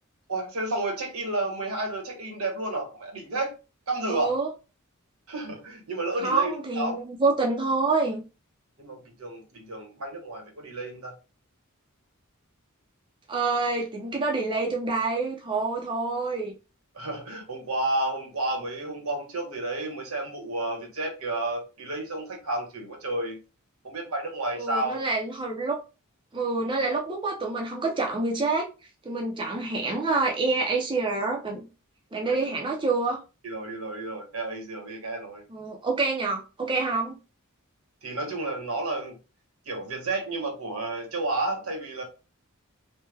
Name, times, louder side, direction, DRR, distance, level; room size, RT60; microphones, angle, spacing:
voice 1, 0.3-3.5 3.9-4.4 5.3-7.0 8.8-11.1 16.9-23.4 23.8-25.0 32.2-32.4 33.4-35.4 38.0-39.2 39.7-42.0, right 2 dB, 80° right, 1.1 m, -31 dB
voice 2, 4.1-4.5 6.2-8.2 13.3-16.5 24.6-25.8 26.3-28.7 29.0-31.7 32.1-33.2 35.5-37.1, right 3 dB, 20° right, 0.5 m, -27 dB
3.3 x 2.1 x 3.3 m
head